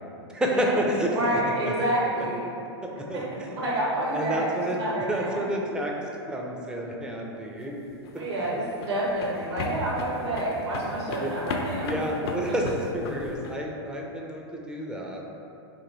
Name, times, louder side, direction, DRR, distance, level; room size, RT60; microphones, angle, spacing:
voice 1, 0.3-1.4 1.7-1.8 2.8-3.6 4.1-4.8 5.1-6.0 6.3-7.8 8.1-8.5 11.2-11.3 11.8-15.2, equal, 5° right, -1 dB, 0.3 m, -30 dB
voice 2, 1.1-2.5 3.1-3.2 3.5-5.5 8.2-12.0 12.5-12.6, right 1 dB, 70° right, -5 dB, 1.2 m, -28 dB
sound 1, 7.9-13.6, left 3 dB, 65° left, 0.4 m, -35 dB
3.0 x 2.6 x 3.9 m, 2.8 s
hypercardioid pair, 120°, 14 cm